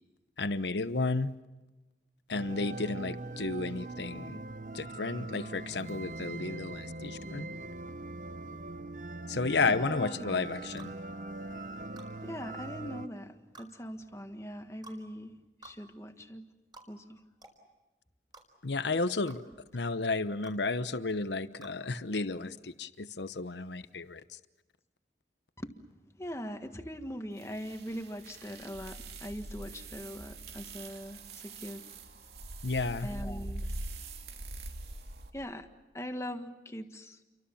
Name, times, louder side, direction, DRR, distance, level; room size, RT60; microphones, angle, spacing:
voice 1, 0.4-1.3 2.3-4.4 4.7-7.5 9.3-10.9 18.6-19.4 19.7-24.2 32.6-33.1, left 3 dB, 85° left, 12 dB, 1.0 m, -32 dB
sound 1, 2.3-13.1, right 2 dB, 45° right, 0.9 m, -41 dB
voice 2, 9.7-10.5 12.2-16.5 16.9-17.2 19.5-19.6 25.6-25.7 26.2-31.8 33.0-33.7 35.3-35.7 35.9-37.2, equal, 15° left, 7 dB, 1.6 m, -41 dB
sound 2, 10.8-11.0 12.0-12.1 13.5-13.7 14.8-15.0 15.6-15.8 16.7-16.9 17.4-17.6 18.3-18.5 19.3-19.4 20.4-20.6 21.6-21.8, right 3 dB, 25° right, 4.7 m, -51 dB
sound 3, 27.4-35.3, right 2 dB, 70° right, 2.9 m, -43 dB
29.5 x 24.5 x 7.2 m, 1.1 s
head